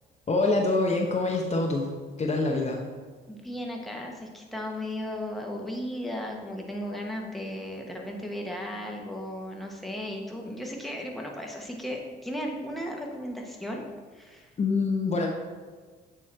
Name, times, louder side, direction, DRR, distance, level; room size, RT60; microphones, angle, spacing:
voice 1, 0.3-1.9 2.2-2.8 14.6-15.3, left 3 dB, 30° left, 0 dB, 0.8 m, -25 dB
voice 2, 3.3-13.8 14.1-14.5, equal, ahead, 0 dB, 1.2 m, -35 dB
8.3 x 3.0 x 4.4 m, 1.4 s
supercardioid pair, 70°, 21 cm